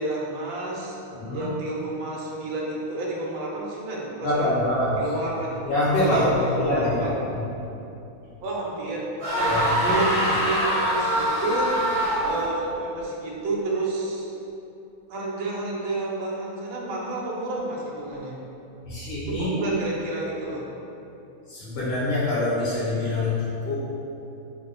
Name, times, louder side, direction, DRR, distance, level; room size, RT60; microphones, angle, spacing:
voice 1, 0.0-1.0 1.3-4.5 5.0-5.7 6.1-7.3 8.4-9.1 9.3-11.7 12.2-14.3 15.1-18.4 19.3-20.7, right 2 dB, 75° right, -3 dB, 1.2 m, -30 dB
voice 2, 1.1-1.5 4.2-5.0 5.6-6.3 6.5-7.0 7.4-7.5 9.4-9.9 12.2-12.4 18.8-19.5 21.5-23.8, left 1 dB, 80° left, -10 dB, 1.5 m, -25 dB
sound 1, 9.2-12.6, right 1 dB, 55° right, 1.3 m, -24 dB
3.5 x 2.0 x 3.7 m, 2.9 s
omnidirectional pair, 2.4 m